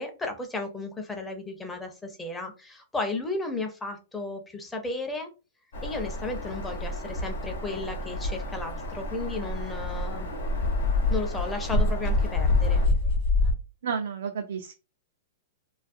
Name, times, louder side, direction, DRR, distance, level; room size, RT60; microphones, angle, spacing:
voice 1, 0.0-5.3 5.8-10.3 11.1-12.8, left 3 dB, 10° left, 4 dB, 0.6 m, -34 dB
Bird vocalization bird call bird song, 5.7-12.9, equal, 80° left, 0.9 m, -34 dB
Dog, 8.9-9.0 9.3-13.5, left 2 dB, 60° left, 0.6 m, -24 dB
voice 2, 13.8-14.7, right 6 dB, 80° right, 4 dB, 0.4 m, -32 dB
2.3 x 2.2 x 2.5 m, 0.31 s
hypercardioid pair, 130°, 0 cm